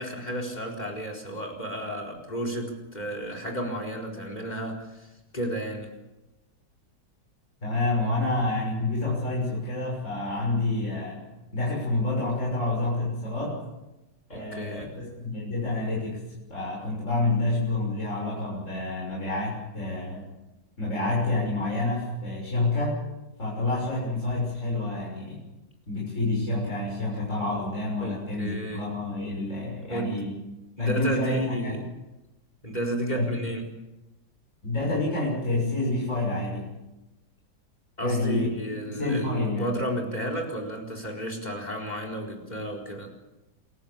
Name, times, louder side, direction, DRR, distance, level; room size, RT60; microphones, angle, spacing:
voice 1, 0.0-5.9 14.3-14.9 28.0-28.9 29.8-30.2 30.8-31.8 32.6-33.7 38.0-43.1, equal, 25° left, 4 dB, 4.5 m, -32 dB
voice 2, 7.6-11.2 11.5-13.6 14.3-16.2 16.5-20.2 20.8-23.0 23.4-25.4 25.9-30.3 30.8-31.8 33.1-33.3 34.6-36.7 38.0-38.5 38.9-39.7, left 2 dB, 45° left, -4 dB, 6.7 m, -28 dB
27.5 x 15.5 x 8.7 m, 1.0 s
omnidirectional pair, 1.9 m